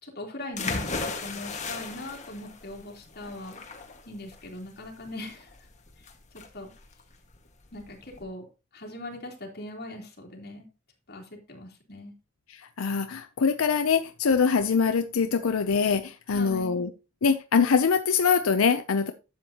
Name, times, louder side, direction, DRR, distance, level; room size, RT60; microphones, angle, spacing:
voice 1, 0.0-3.6 4.0-5.5 6.0-6.1 6.3-6.7 7.7-8.5 8.7-10.7 11.1-12.1 16.3-16.8, left 1 dB, 50° left, 3.3 m, -40 dB
sound 1, 0.6-8.2, left 4 dB, 35° left, 1.7 m, -37 dB
voice 2, 12.5-16.9 17.2-19.1, left 5 dB, 90° left, 0.6 m, -24 dB
12.0 x 8.1 x 2.9 m
head